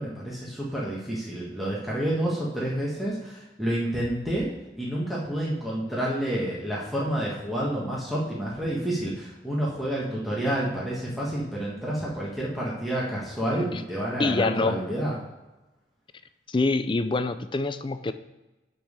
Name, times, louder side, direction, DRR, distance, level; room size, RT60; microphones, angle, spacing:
voice 1, 0.0-4.5 4.7-15.2, right 1 dB, ahead, -7 dB, 1.6 m, -29 dB
voice 2, 14.2-14.8 16.5-18.1, left 3 dB, 25° left, 11 dB, 0.4 m, -25 dB
7.4 x 5.6 x 6.6 m, 1.1 s
head